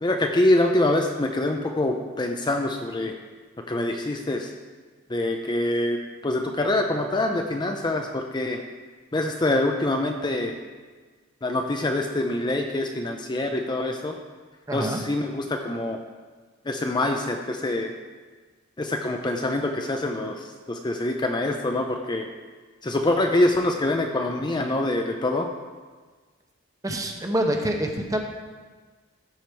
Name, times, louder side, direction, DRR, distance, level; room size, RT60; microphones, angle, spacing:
voice 1, 0.0-3.1 3.7-4.5 5.1-6.0 6.2-8.6 9.1-10.5 11.4-14.2 14.7-16.0 16.7-17.9 18.8-22.3 22.8-25.5, left 1 dB, 20° left, 3 dB, 0.5 m, -25 dB
voice 2, 14.7-15.0 26.8-28.2, right 1 dB, 15° right, 3 dB, 0.8 m, -26 dB
14.5 x 5.0 x 4.5 m, 1.4 s
head